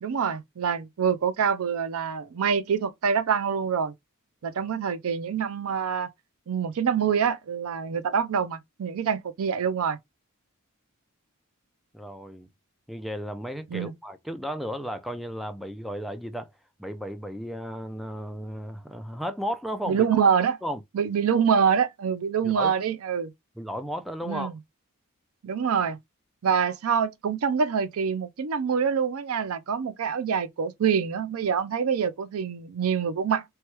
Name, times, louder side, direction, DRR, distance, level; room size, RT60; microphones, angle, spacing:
voice 1, 0.0-3.9 4.4-6.1 6.5-10.0 13.7-13.9 19.9-20.6 20.9-23.3 24.2-24.5 25.4-26.0 26.4-33.4, right 7 dB, 70° right, 0.4 m, -25 dB
voice 2, 11.9-12.5 12.9-16.5 16.8-20.2 20.6-20.8 22.4-22.8 23.6-24.5, equal, ahead, 0.4 m, -34 dB
3.2 x 2.2 x 2.9 m
head